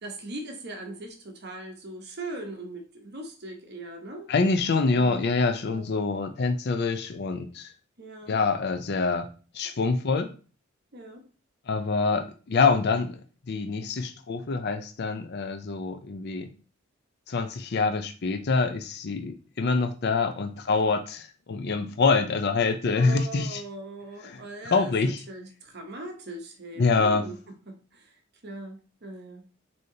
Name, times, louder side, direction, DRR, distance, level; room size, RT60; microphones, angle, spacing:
voice 1, 0.0-4.3 4.9-5.2 5.7-5.9 8.0-8.4 10.9-11.3 22.9-27.4 27.7-29.5, right 1 dB, 50° right, 3 dB, 0.9 m, -40 dB
voice 2, 4.3-7.7 8.3-10.3 11.7-13.2 13.5-16.5 17.3-23.6 24.2-24.4 24.7-25.2 26.8-27.2, left 4 dB, 50° left, 7 dB, 0.5 m, -25 dB
6.4 x 2.8 x 2.8 m, 0.37 s
head